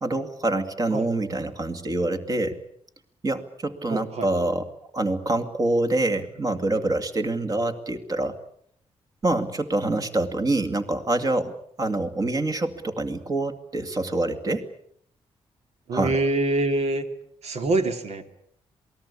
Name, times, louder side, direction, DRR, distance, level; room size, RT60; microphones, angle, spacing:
voice 1, 0.0-2.6 3.2-4.7 4.9-8.4 9.2-11.5 11.8-14.7 15.9-16.2, right 2 dB, 30° right, 8 dB, 2.4 m, -26 dB
voice 2, 3.9-4.3 15.9-17.0 17.4-18.4, right 2 dB, 70° right, 8 dB, 2.8 m, -25 dB
27.5 x 19.5 x 8.6 m, 0.68 s
wide cardioid pair, 140°, 11 cm